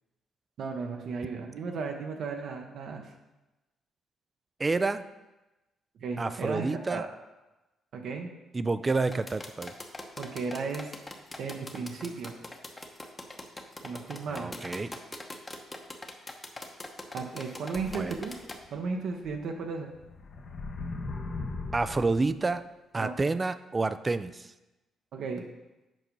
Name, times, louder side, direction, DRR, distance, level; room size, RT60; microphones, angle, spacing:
voice 1, 0.6-3.1 6.0-7.1 7.9-8.3 10.2-10.9 11.4-12.3 13.8-14.5 17.1-18.4 18.7-19.9 23.0-23.2 25.1-25.4, right 4 dB, 70° right, 3 dB, 0.9 m, -35 dB
voice 2, 4.6-5.0 6.2-7.0 8.5-9.7 14.3-14.9 17.9-18.2 21.7-22.6 22.9-24.5, right 3 dB, 25° right, 13 dB, 0.4 m, -29 dB
sound 1, 9.1-18.6, left 2 dB, 15° left, 1.0 m, -42 dB
sound 2, 17.7-18.7 19.3-19.4 19.9-22.4, left 3 dB, 50° left, 1.0 m, -38 dB
7.6 x 5.0 x 5.3 m, 1.0 s
cardioid pair, 90°, 0 cm